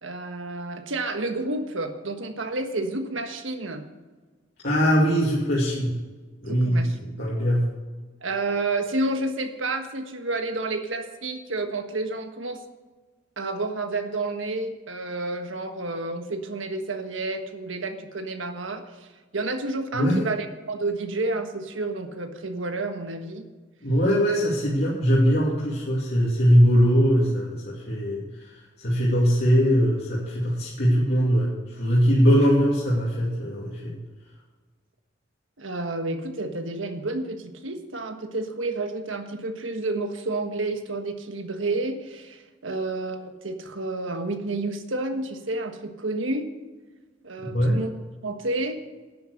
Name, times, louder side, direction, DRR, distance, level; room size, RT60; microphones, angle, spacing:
voice 1, 0.0-3.8 6.5-7.3 8.2-12.6 13.4-19.1 19.3-23.5 35.6-46.5 47.2-47.9 48.2-48.8, right 2 dB, 90° right, 7 dB, 1.4 m, -30 dB
voice 2, 4.6-5.9 6.4-7.6 19.9-20.2 23.8-28.2 28.8-33.9 47.4-47.8, equal, 55° left, -7 dB, 2.6 m, -21 dB
11.5 x 9.5 x 6.5 m, 1.3 s
head